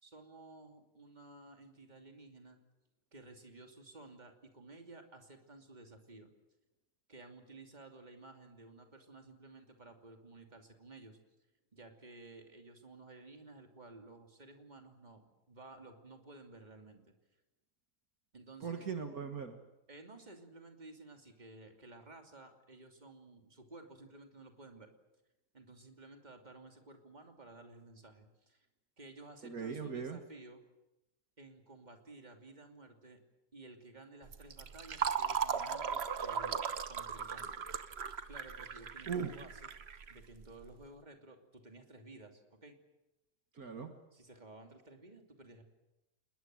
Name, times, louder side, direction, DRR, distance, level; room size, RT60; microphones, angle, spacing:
voice 1, 0.0-2.6 3.1-6.3 7.1-11.2 11.7-17.0 18.3-18.9 19.9-24.9 25.5-28.7 29.0-30.6 31.4-33.2 33.5-37.7 38.3-39.7 40.1-42.8 44.1-45.6, right 2 dB, 25° right, 4 dB, 3.0 m, -54 dB
voice 2, 18.6-19.6 29.4-30.2 39.1-39.3 43.5-43.9, right 6 dB, 65° right, 6 dB, 2.1 m, -39 dB
Fill (with liquid), 34.3-40.7, right 6 dB, 45° right, 1.2 m, -37 dB
28.0 x 21.0 x 7.7 m, 0.96 s
omnidirectional pair, 1.7 m